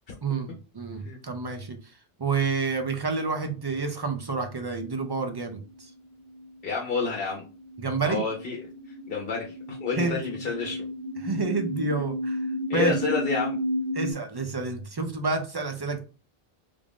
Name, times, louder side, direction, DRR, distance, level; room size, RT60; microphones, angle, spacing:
voice 1, 0.2-1.8 2.2-5.9 7.8-8.2 9.9-10.2 11.2-12.4 12.7-13.0 13.9-16.0, right 4 dB, 40° right, 5 dB, 0.3 m, -29 dB
sound 1, 5.6-14.1, left 1 dB, 65° right, 1.0 m, -33 dB
voice 2, 6.6-7.4 8.0-8.6 9.1-10.9 12.7-13.6, left 4 dB, 65° left, -2 dB, 0.9 m, -29 dB
3.4 x 2.5 x 3.4 m, 0.35 s
omnidirectional pair, 1.0 m